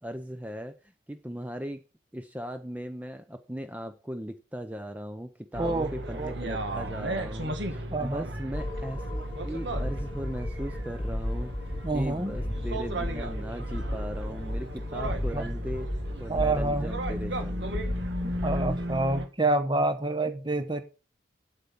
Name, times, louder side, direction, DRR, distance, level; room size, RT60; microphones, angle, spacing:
voice 1, 0.0-1.8 2.1-11.5 11.9-15.9 16.2-17.7 18.2-18.4 18.7-18.8, equal, 10° right, 0.6 m, -38 dB
sound 1, 5.5-19.3, right 1 dB, 65° right, 1.8 m, -35 dB
voice 2, 5.6-6.3 7.9-8.3 11.8-12.3 15.3-15.5 16.3-16.9 18.4-20.8, right 2 dB, 25° right, 1.1 m, -28 dB
sound 2, 8.5-18.8, left 1 dB, 30° left, 1.1 m, -34 dB
8.2 x 8.2 x 5.5 m
head